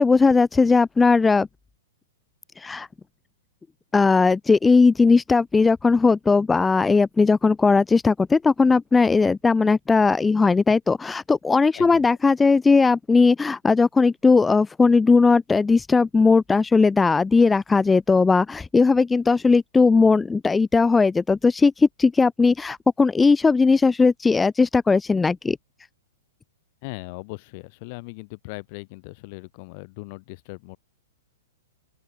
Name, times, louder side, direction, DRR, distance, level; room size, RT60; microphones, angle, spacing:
voice 1, 0.0-1.5 2.6-2.9 3.9-25.6, left 4 dB, 10° left, 0.5 m, -18 dB
voice 2, 11.7-12.1 26.8-30.8, left 29 dB, 45° left, 3.3 m, -39 dB
open air
hypercardioid pair, 115°, 0 cm